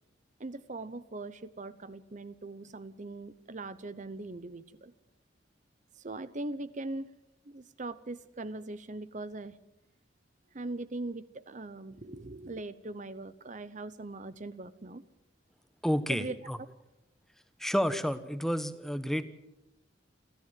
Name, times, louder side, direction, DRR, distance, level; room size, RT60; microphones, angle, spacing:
voice 1, 0.4-4.9 6.0-7.1 7.5-9.6 10.5-15.0 16.1-16.3, right 2 dB, 40° right, 14 dB, 0.8 m, -40 dB
voice 2, 15.8-16.6 17.6-19.2, equal, ahead, 11 dB, 1.2 m, -30 dB
29.0 x 13.5 x 9.1 m, 0.91 s
head